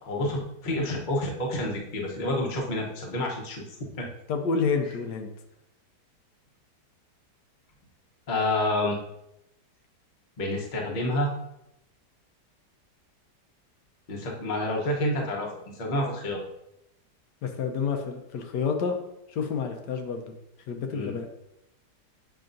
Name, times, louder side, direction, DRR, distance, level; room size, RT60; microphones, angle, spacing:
voice 1, 0.0-3.6 4.0-4.1 8.3-9.0 10.4-11.3 14.1-16.4 20.9-21.1, left 1 dB, 35° left, -1 dB, 0.9 m, -28 dB
voice 2, 4.3-5.3 17.4-19.0 19.3-20.2 20.7-21.3, left 5 dB, 80° left, 4 dB, 1.2 m, -29 dB
7.6 x 4.9 x 2.6 m, 0.84 s
omnidirectional pair, 1.9 m